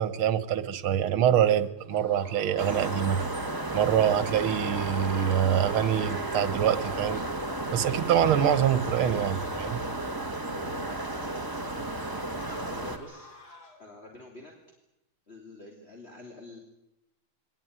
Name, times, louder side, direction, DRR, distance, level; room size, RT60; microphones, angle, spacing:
voice 1, 0.0-3.3 3.7-7.2 7.7-9.8, right 10 dB, 80° right, 14 dB, 2.0 m, -25 dB
sound 1, 1.8-13.9, left 2 dB, 50° left, 3.5 m, -49 dB
sound 2, 2.6-13.0, right 2 dB, 10° right, 1.4 m, -33 dB
voice 2, 12.7-13.3 13.8-14.5 15.3-16.6, left 2 dB, 30° left, 0 dB, 3.1 m, -47 dB
23.0 x 19.0 x 9.4 m, 0.88 s
omnidirectional pair, 2.3 m